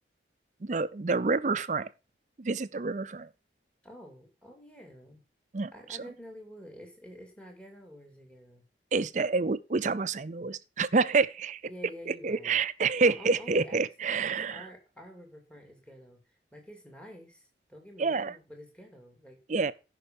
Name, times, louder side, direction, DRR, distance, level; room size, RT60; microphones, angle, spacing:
voice 1, 0.6-1.9 2.4-3.3 5.5-5.7 8.9-11.6 12.1-14.7 18.0-18.4 19.5-19.7, right 4 dB, 40° right, 0.5 m, -28 dB
voice 2, 3.8-5.2 5.7-8.6 11.7-12.6 13.0-19.4, equal, 5° left, 2.5 m, -49 dB
14.5 x 5.7 x 5.3 m
head